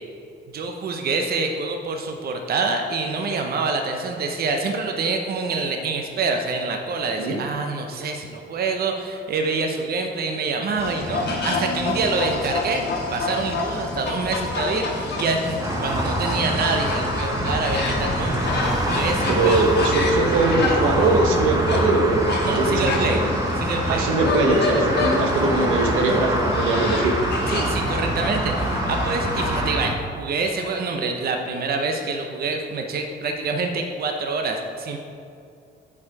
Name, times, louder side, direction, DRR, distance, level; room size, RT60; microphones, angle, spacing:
voice 1, 0.5-12.9 13.1-18.5 18.8-19.6 22.4-23.3 23.6-24.1 27.5-35.0, right 3 dB, 50° right, 3 dB, 0.7 m, -26 dB
sound 1, 10.8-29.6, left 3 dB, 55° left, 1.4 m, -28 dB
sound 2, 15.6-29.9, right 1 dB, 20° right, 0.9 m, -25 dB
voice 2, 19.3-23.3 23.9-27.2, right 2 dB, 90° right, 2 dB, 1.0 m, -21 dB
7.2 x 4.8 x 4.7 m, 2.4 s
cardioid pair, 90°, 20 cm